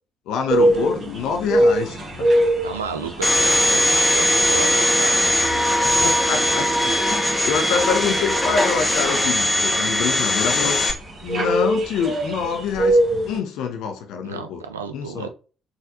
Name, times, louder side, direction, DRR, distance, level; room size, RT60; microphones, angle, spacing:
voice 1, 0.3-2.3 5.8-10.8 11.2-13.0 13.3-14.6 14.9-15.3, left 6 dB, 60° left, 0.4 m, -26 dB
sound 1, 0.5-13.4, right 1 dB, 40° right, 1.2 m, -24 dB
voice 2, 2.6-5.2 14.2-15.3, right 5 dB, 80° right, 0.3 m, -32 dB
Domestic sounds home sounds, 3.2-10.9, left 1 dB, 10° left, 0.9 m, -20 dB
3.9 x 2.4 x 2.5 m
figure-of-eight pair, 45°, 0 cm